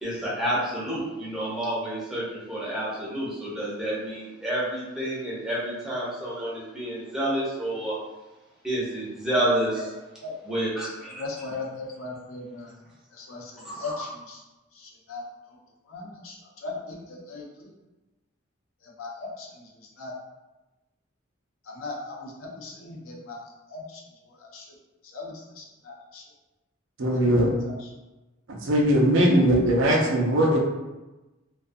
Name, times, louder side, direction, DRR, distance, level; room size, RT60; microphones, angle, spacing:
voice 1, 0.0-8.0 8.6-9.9 10.4-11.2 13.6-14.0, right 1 dB, 5° right, -8 dB, 0.7 m, -29 dB
voice 2, 11.2-12.7 13.1-14.4 14.7-15.2 15.5-15.6 15.9-17.7 18.8-19.7 20.0-20.1 21.6-23.4 23.7-24.0 24.3-24.7 25.1-26.2 27.1-27.5 27.8-27.9, left 3 dB, 90° left, -2 dB, 0.6 m, -38 dB
voice 3, 27.0-27.5 28.5-30.6, equal, 70° right, -1 dB, 0.5 m, -20 dB
2.3 x 2.3 x 2.6 m, 1.1 s
head